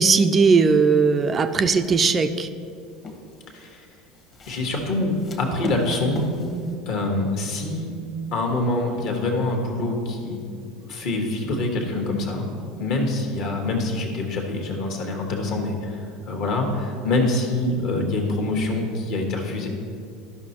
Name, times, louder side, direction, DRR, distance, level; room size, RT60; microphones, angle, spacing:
voice 1, 0.0-2.5, right 4 dB, 30° right, 8 dB, 0.4 m, -18 dB
sound 1, 1.3-1.7 2.3-3.5 4.1-6.7, left 2 dB, 35° left, 1.2 m, -38 dB
voice 2, 3.5-3.9 4.5-6.4 6.9-7.9 8.3-10.4 10.8-12.5 12.8-19.7, left 2 dB, 55° left, 2 dB, 1.3 m, -25 dB
12.0 x 5.6 x 2.9 m, 2.4 s
figure-of-eight pair, 70°, 0 cm